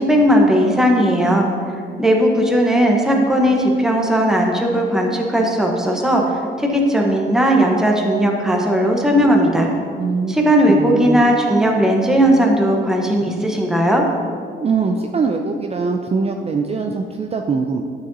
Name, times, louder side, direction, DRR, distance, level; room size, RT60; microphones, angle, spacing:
voice 1, 0.0-1.5 2.0-9.7 10.3-14.0, equal, 5° right, 0 dB, 1.0 m, -16 dB
voice 2, 10.0-11.2 14.6-17.8, right 4 dB, 30° right, 4 dB, 0.4 m, -22 dB
9.0 x 6.7 x 2.7 m, 2.2 s
cardioid pair, 90°, 20 cm